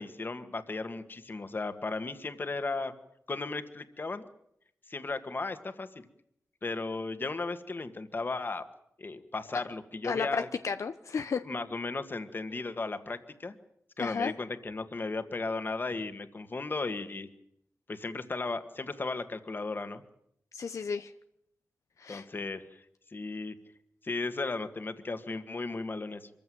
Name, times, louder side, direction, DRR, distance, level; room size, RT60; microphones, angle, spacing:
voice 1, 0.0-2.9 3.3-4.2 4.9-6.0 6.6-8.7 9.0-10.5 11.4-13.5 14.0-17.3 17.9-20.0 22.1-22.8 23.1-23.6 24.0-26.3, left 3 dB, 40° left, 10 dB, 2.0 m, -35 dB
voice 2, 10.0-11.4 14.0-14.3 20.5-21.1 22.0-22.2, left 5 dB, 75° left, 9 dB, 0.9 m, -33 dB
25.0 x 15.0 x 9.4 m, 0.75 s
wide cardioid pair, 110°, 5 cm